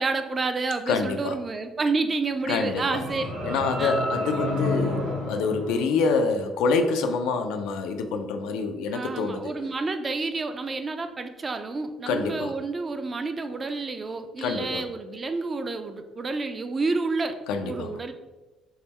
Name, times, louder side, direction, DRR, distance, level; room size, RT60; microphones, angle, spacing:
voice 1, 0.0-3.2 3.5-4.0 8.9-17.4 17.6-18.1, right 3 dB, 30° right, 8 dB, 0.3 m, -29 dB
voice 2, 0.9-1.4 2.5-3.0 3.4-9.5 12.1-12.5 14.4-14.8 17.5-17.9, left 4 dB, 85° left, 6 dB, 0.3 m, -26 dB
sound 1, 2.4-6.6, left 1 dB, 60° right, 1.0 m, -31 dB
3.5 x 2.0 x 4.2 m, 1.2 s
cardioid pair, 110°, 0 cm